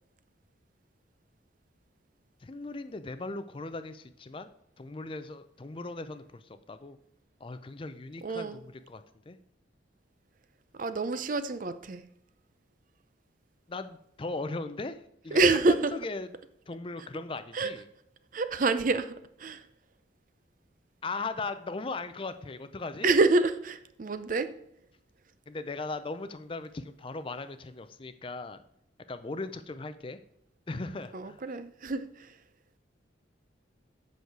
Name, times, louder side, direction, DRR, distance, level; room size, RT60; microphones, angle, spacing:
voice 1, 2.4-4.5 4.8-7.0 7.4-9.4 13.7-16.3 16.7-17.9 21.0-23.1 25.5-28.6 29.1-30.2 30.7-31.4, left 3 dB, 30° left, 11 dB, 0.4 m, -38 dB
voice 2, 8.2-8.6 10.8-12.0 15.3-15.9 17.5-17.7 18.3-19.1 19.4-19.6 23.0-24.5 31.1-32.3, right 3 dB, 45° right, 11 dB, 0.5 m, -27 dB
8.0 x 6.4 x 4.6 m, 0.75 s
head